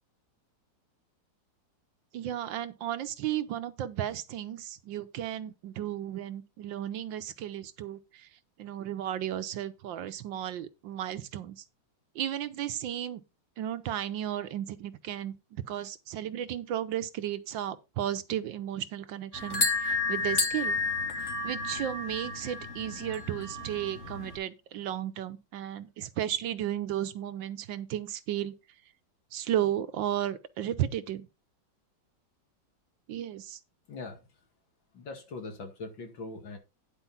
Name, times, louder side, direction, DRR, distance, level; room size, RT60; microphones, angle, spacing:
voice 1, 2.1-8.3 8.6-11.6 12.1-13.2 13.6-20.8 21.2-28.5 29.3-31.3 33.1-33.6, right 11 dB, 80° right, 1.6 m, -34 dB
sound 1, 19.3-24.4, left 3 dB, 40° left, 2.2 m, -31 dB
voice 2, 33.9-34.2 34.9-36.6, left 3 dB, 85° left, 2.9 m, -41 dB
10.5 x 4.6 x 5.7 m
omnidirectional pair, 2.0 m